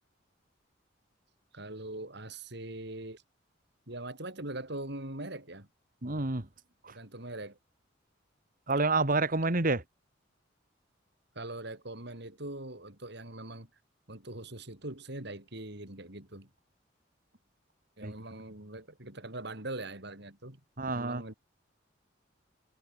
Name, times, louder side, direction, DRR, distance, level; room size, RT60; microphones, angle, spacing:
voice 1, 1.5-3.2 3.9-5.7 6.9-7.6 11.3-13.7 14.1-16.5 18.0-20.6 20.9-21.3, right 2 dB, 65° right, 6.5 m, -42 dB
voice 2, 6.0-6.5 6.8-7.0 8.7-9.8 18.0-18.1 20.8-21.2, right 3 dB, 45° right, 2.2 m, -28 dB
head